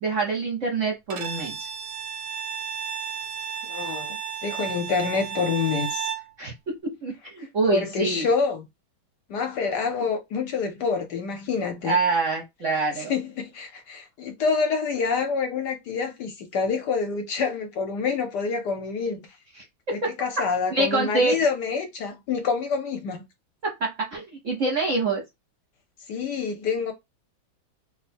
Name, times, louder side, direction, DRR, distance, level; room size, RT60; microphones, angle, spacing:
voice 1, 0.0-1.6 6.4-8.3 11.9-13.1 19.6-20.1 20.7-21.4 23.6-25.2, right 3 dB, 55° right, 0.8 m, -26 dB
Bowed string instrument, 1.1-6.3, right 8 dB, 90° right, 1.6 m, -33 dB
voice 2, 3.6-4.2 4.4-6.1 7.7-8.6 9.3-12.0 13.0-19.2 19.9-23.2 26.1-26.9, left 5 dB, 65° left, 1.2 m, -27 dB
3.3 x 2.1 x 4.1 m
omnidirectional pair, 2.2 m